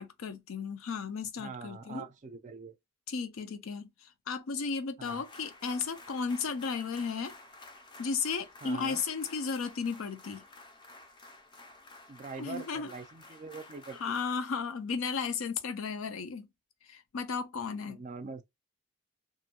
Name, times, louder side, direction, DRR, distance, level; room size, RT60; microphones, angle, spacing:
voice 1, 0.0-2.1 3.1-3.9 4.3-7.3 8.0-10.4 12.4-12.9 14.0-16.5 16.9-18.0, left 5 dB, 75° left, 0.5 m, -34 dB
voice 2, 1.4-2.8 5.0-5.2 8.6-9.0 12.1-14.2 17.9-18.4, right 4 dB, 35° right, 0.4 m, -43 dB
sound 1, 5.0-14.3, left 2 dB, 25° left, 0.4 m, -52 dB
2.5 x 2.2 x 2.8 m
head